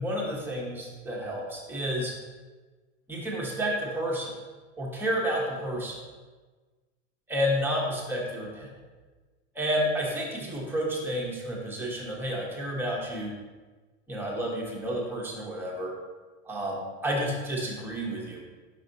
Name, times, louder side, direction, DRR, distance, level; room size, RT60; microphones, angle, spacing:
voice 1, 0.0-2.1 3.1-4.3 4.8-6.0 7.3-8.7 9.5-13.3 14.1-15.9 16.5-18.4, equal, 5° right, -3 dB, 1.0 m, -30 dB
5.5 x 5.0 x 3.9 m, 1.3 s
supercardioid pair, 150°, 37 cm